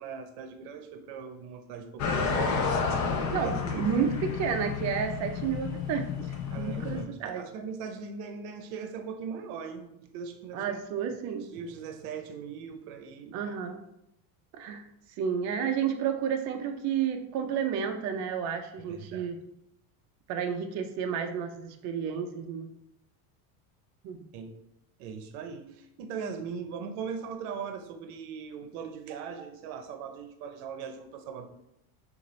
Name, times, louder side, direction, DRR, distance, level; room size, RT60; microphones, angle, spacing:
voice 1, 0.0-2.6 3.3-3.9 6.5-10.8 11.5-13.4 18.8-19.3 24.3-24.6 25.0-31.5, right 6 dB, 75° right, 6 dB, 0.8 m, -39 dB
sound 1, 2.0-7.0, left 5 dB, 40° left, 0.7 m, -31 dB
voice 2, 3.3-7.5 10.5-11.5 13.3-13.8 14.5-19.4 20.3-22.7 24.0-24.2, right 7 dB, 40° right, 5 dB, 0.5 m, -31 dB
6.6 x 2.6 x 3.1 m, 0.82 s
cardioid pair, 150°, 44 cm